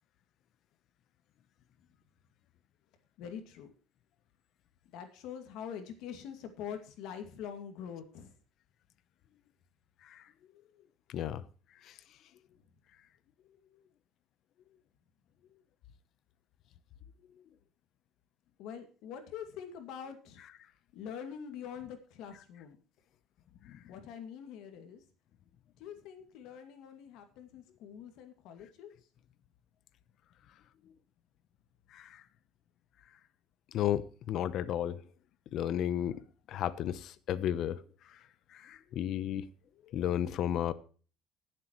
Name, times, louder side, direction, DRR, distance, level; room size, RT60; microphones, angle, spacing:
voice 1, 3.2-3.7 4.9-8.3 18.6-20.4 20.9-22.8 23.9-25.0 25.8-28.9, left 8 dB, 75° left, 2.3 m, -44 dB
voice 2, 11.1-11.4 23.6-23.8 31.9-32.2 33.7-35.0 35.5-37.8 38.5-39.4 39.9-40.7, left 11 dB, 60° left, 0.9 m, -33 dB
19.5 x 7.6 x 3.2 m
cardioid pair, 130°, 0 cm